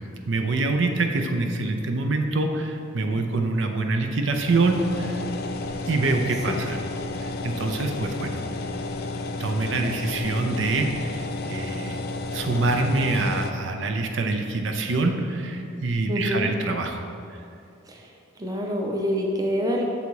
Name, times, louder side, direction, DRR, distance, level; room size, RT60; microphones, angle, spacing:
voice 1, 0.2-5.3 5.9-6.8 7.2-8.4 9.4-12.0 12.3-17.1, right 3 dB, 75° right, 5 dB, 0.6 m, -25 dB
sound 1, 4.4-13.5, left 2 dB, 50° left, 0.3 m, -32 dB
voice 2, 16.1-16.5 17.9-18.1 18.4-19.8, equal, 20° right, 0 dB, 0.6 m, -26 dB
6.9 x 4.0 x 4.7 m, 2.5 s
head